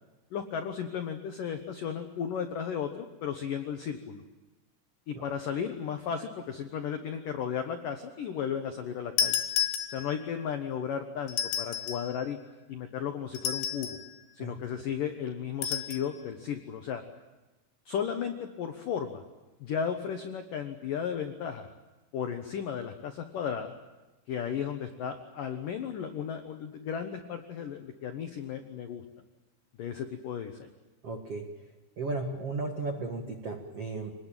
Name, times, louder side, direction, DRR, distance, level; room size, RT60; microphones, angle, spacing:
voice 1, 0.3-4.2 5.1-9.4 9.9-12.4 12.7-14.0 14.4-17.0 17.9-19.2 19.6-21.7 22.1-23.7 24.3-29.0 29.8-30.7, left 7 dB, 85° left, 6 dB, 1.9 m, -34 dB
sound 1, 9.2-10.3 11.3-12.1 13.4-14.1 15.6-16.1, left 8 dB, 65° left, 3.5 m, -31 dB
voice 2, 31.0-31.4 32.0-34.1, right 3 dB, 80° right, 3 dB, 1.3 m, -35 dB
26.5 x 20.0 x 9.0 m, 1.1 s
omnidirectional pair, 5.9 m